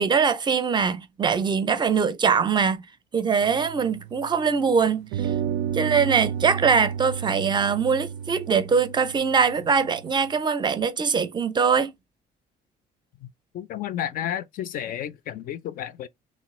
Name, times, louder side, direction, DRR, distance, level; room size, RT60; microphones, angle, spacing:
voice 1, 0.0-2.8 3.1-5.3 5.7-11.9, right 6 dB, 25° right, 0.4 m, -22 dB
sound 1, 3.4-4.6 5.1-10.3, right 8 dB, 90° right, 0.4 m, -32 dB
voice 2, 13.5-16.1, left 10 dB, 55° left, 0.4 m, -32 dB
3.0 x 2.3 x 3.0 m
cardioid pair, 110°, 17 cm